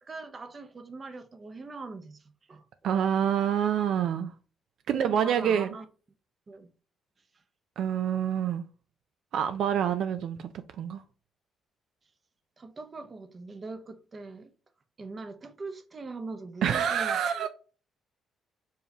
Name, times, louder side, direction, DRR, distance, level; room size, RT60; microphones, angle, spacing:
voice 1, 0.0-2.6 4.9-5.8 6.5-6.7 7.3-7.4 12.6-14.5 15.0-17.5, right 3 dB, 35° right, 0.7 m, -41 dB
voice 2, 2.8-4.3 4.9-5.7 7.8-8.7 9.3-10.5 10.8-11.0 16.6-17.5, right 9 dB, 75° right, 0.3 m, -27 dB
4.4 x 3.3 x 2.8 m
cardioid pair, 90°, 0 cm